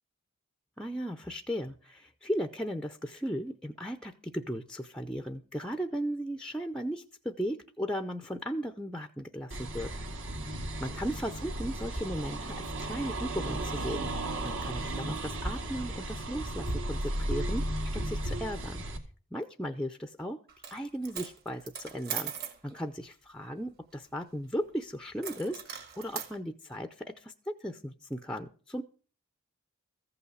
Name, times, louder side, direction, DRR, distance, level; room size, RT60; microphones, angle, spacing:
voice 1, 0.8-9.9 10.8-14.1 14.4-18.8 19.3-20.4 20.7-22.3 22.6-28.8, equal, 5° left, 7 dB, 0.7 m, -36 dB
sound 1, 9.5-19.0, right 1 dB, 60° right, 2.3 m, -34 dB
Coin (dropping), 20.5-20.8 21.0-22.6 25.2-26.3, right 8 dB, 45° right, 2.5 m, -39 dB
14.5 x 5.8 x 8.0 m, 0.39 s
head